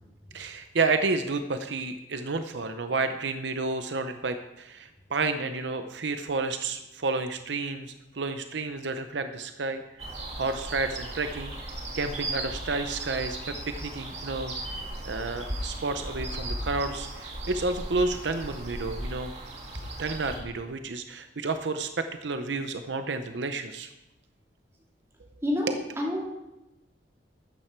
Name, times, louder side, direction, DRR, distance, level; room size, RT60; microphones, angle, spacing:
voice 1, 0.3-9.8 10.4-11.5 11.9-14.5 15.0-19.3 20.0-23.9, right 3 dB, 75° right, 8 dB, 0.7 m, -30 dB
sound 1, 10.0-20.4, right 1 dB, 35° right, 2.2 m, -36 dB
voice 2, 25.4-26.3, left 1 dB, 15° right, -3 dB, 2.6 m, -28 dB
13.0 x 9.2 x 4.5 m, 0.95 s
head